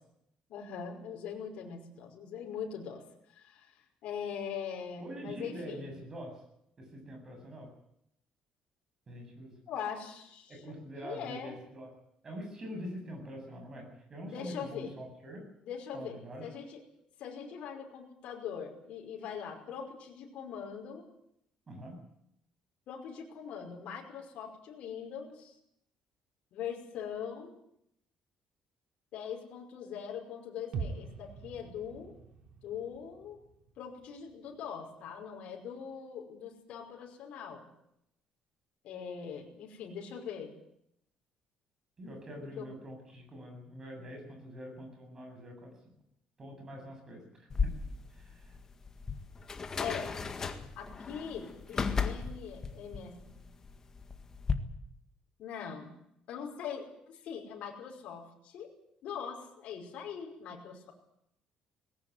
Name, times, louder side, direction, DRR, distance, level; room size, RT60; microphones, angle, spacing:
voice 1, 0.5-3.0 3.3-5.9 9.7-10.7 11.0-11.6 14.2-14.9 15.6-16.8 17.2-21.1 22.9-25.5 26.5-27.5 29.1-32.1 32.6-33.4 33.8-37.7 38.8-40.5 42.6-42.7 49.8-50.1 50.8-53.4 55.4-55.9 56.3-58.7 59.0-60.9, left 7 dB, 60° left, 1 dB, 5.5 m, -42 dB
voice 2, 5.0-6.4 6.8-7.7 9.1-9.5 10.5-11.9 12.2-15.4 15.9-16.4 21.7-22.0 42.0-45.7 46.4-47.7 48.1-48.5, equal, 25° right, 3 dB, 7.7 m, -44 dB
sound 1, 30.7-34.7 35.0-35.1, right 5 dB, 50° right, 2.7 m, -43 dB
sound 2, 47.5-54.5, left 5 dB, 25° left, 1.8 m, -35 dB
19.5 x 17.5 x 9.5 m, 0.76 s
cardioid pair, 165°, 2 cm